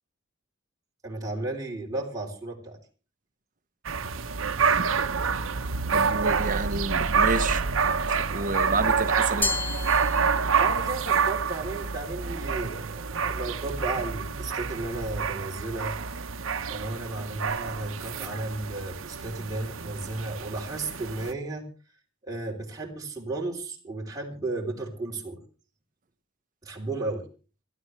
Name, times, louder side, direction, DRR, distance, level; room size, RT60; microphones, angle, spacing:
voice 1, 1.0-2.8 10.3-16.0 16.7-21.6 22.3-25.4 26.6-27.2, right 2 dB, 20° right, 3.3 m, -34 dB
sound 1, 3.8-21.3, right 5 dB, 85° right, 0.9 m, -27 dB
voice 2, 5.9-9.5, right 3 dB, 40° right, 1.0 m, -30 dB
Glass, 9.4-10.9, left 2 dB, 10° left, 1.4 m, -31 dB
26.0 x 13.0 x 3.2 m
head